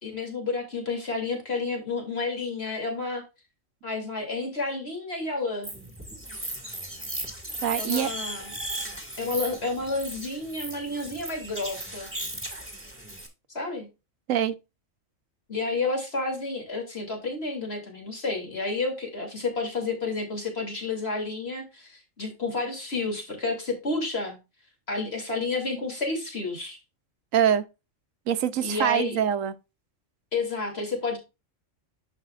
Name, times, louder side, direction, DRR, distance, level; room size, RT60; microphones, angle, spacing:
voice 1, 0.0-3.2 3.8-5.7 7.8-8.5 9.2-12.1 13.5-13.9 15.5-24.4 24.9-26.8 28.6-29.2 30.3-31.2, left 3 dB, 50° left, 3.1 m, -30 dB
sound 1, 5.6-13.3, right 1 dB, 10° right, 1.9 m, -36 dB
voice 2, 7.6-8.1 14.3-14.5 27.3-27.6 28.3-29.5, right 9 dB, 80° right, 1.1 m, -24 dB
11.0 x 5.6 x 2.4 m
omnidirectional pair, 1.4 m